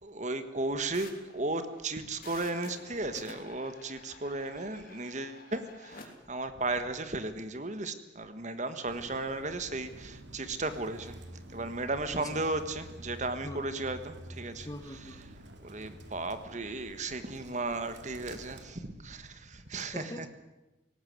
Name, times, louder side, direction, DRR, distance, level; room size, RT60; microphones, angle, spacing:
voice 1, 0.0-11.2 11.5-14.7 15.6-20.3, right 2 dB, 40° right, 10 dB, 1.6 m, -35 dB
sound 1, 0.9-6.1, left 4 dB, 50° left, 3.4 m, -51 dB
Bird, 8.8-18.7, right 1 dB, 70° right, 2.6 m, -49 dB
voice 2, 14.6-15.3 19.9-20.3, left 1 dB, 20° left, 10 dB, 1.2 m, -42 dB
18.5 x 18.5 x 9.5 m, 1.0 s
head